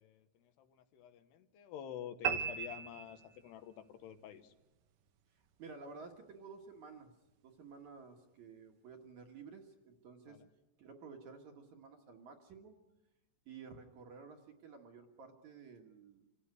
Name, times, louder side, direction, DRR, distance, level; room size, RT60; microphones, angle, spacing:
voice 1, 0.0-4.5 10.3-10.5, left 10 dB, 75° left, 9 dB, 3.1 m, -49 dB
sound 1, 2.2-3.8, right 7 dB, 70° right, 2.0 m, -37 dB
voice 2, 5.3-7.1 7.4-10.4 10.8-12.8 13.5-16.3, right 5 dB, 55° right, 3 dB, 2.4 m, -53 dB
27.5 x 16.0 x 9.6 m, 0.99 s
omnidirectional pair, 4.9 m